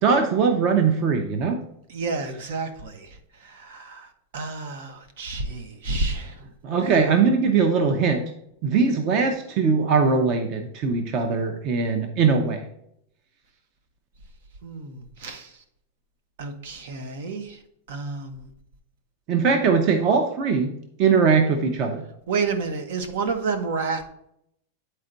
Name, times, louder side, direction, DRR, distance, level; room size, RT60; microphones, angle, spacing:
voice 1, 0.0-1.6 6.6-8.2 8.6-12.6 19.3-20.7 21.0-22.0, right 5 dB, 35° right, 5 dB, 0.7 m, -21 dB
voice 2, 1.9-6.4 6.7-7.2 14.6-15.6 16.4-17.6 17.9-18.5 22.3-24.1, right 4 dB, 65° right, 8 dB, 1.1 m, -30 dB
9.5 x 4.4 x 3.9 m, 0.74 s
supercardioid pair, 170°, 0 cm